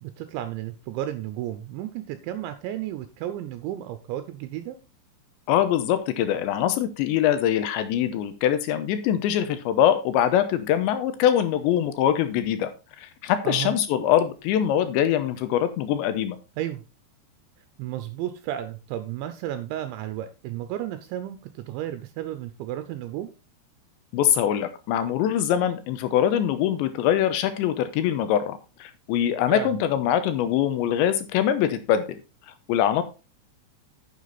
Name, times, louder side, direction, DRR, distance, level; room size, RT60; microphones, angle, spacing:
voice 1, 0.0-4.8 13.4-13.7 16.6-16.8 17.8-23.3 29.5-29.8, right 12 dB, 80° right, 10 dB, 3.0 m, -33 dB
voice 2, 5.5-12.7 13.0-16.4 24.1-32.2 32.7-33.0, left 10 dB, 80° left, 10 dB, 2.9 m, -23 dB
9.5 x 6.9 x 4.0 m, 0.29 s
omnidirectional pair, 5.5 m